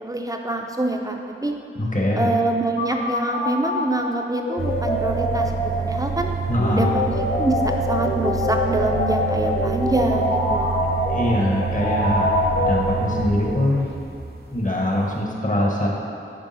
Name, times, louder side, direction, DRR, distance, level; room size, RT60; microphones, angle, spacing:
voice 1, 0.0-1.5 2.1-5.5 5.8-6.3 6.7-10.7, right 2 dB, 15° right, 2 dB, 0.6 m, -25 dB
voice 2, 1.7-2.3 6.5-6.9 11.1-12.3 12.6-13.9 14.5-15.9, left 1 dB, 40° left, -2 dB, 1.1 m, -22 dB
sound 1, 2.8-13.5, left 1 dB, 60° left, 0.8 m, -25 dB
sound 2, 4.6-15.2, right 5 dB, 50° right, 0.8 m, -28 dB
9.2 x 3.4 x 4.2 m, 2.6 s
wide cardioid pair, 50°, 21 cm